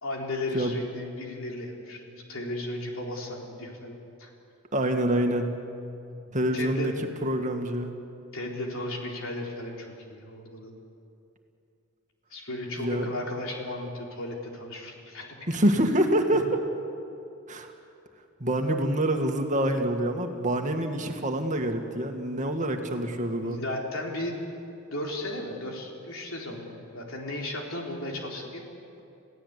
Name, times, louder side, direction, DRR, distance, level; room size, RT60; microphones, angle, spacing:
voice 1, 0.0-4.3 6.3-6.9 8.3-10.7 12.3-15.4 16.3-16.4 23.4-24.4 24.9-28.6, left 1 dB, 70° left, -1 dB, 4.0 m, -35 dB
voice 2, 4.7-5.5 6.3-6.9 7.2-7.9 12.8-13.1 15.5-16.5 17.5-17.7 18.4-23.6, right 1 dB, 35° right, 4 dB, 2.0 m, -26 dB
27.5 x 17.0 x 8.3 m, 2.7 s
head